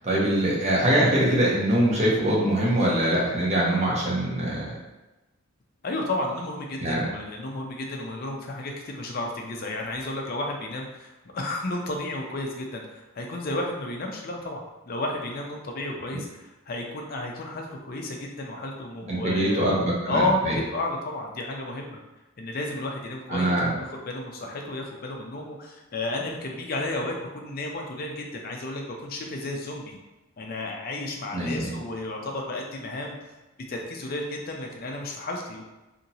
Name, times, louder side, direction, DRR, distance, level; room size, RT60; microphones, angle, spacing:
voice 1, 0.0-4.8 6.8-7.0 19.1-20.6 23.3-23.7 31.3-31.7, right 1 dB, 30° right, -4 dB, 0.7 m, -23 dB
voice 2, 5.8-19.7 20.1-22.0 22.4-30.0 30.4-33.2 33.7-35.6, left 2 dB, 45° left, 1 dB, 0.4 m, -32 dB
2.8 x 2.8 x 2.7 m, 1.1 s
head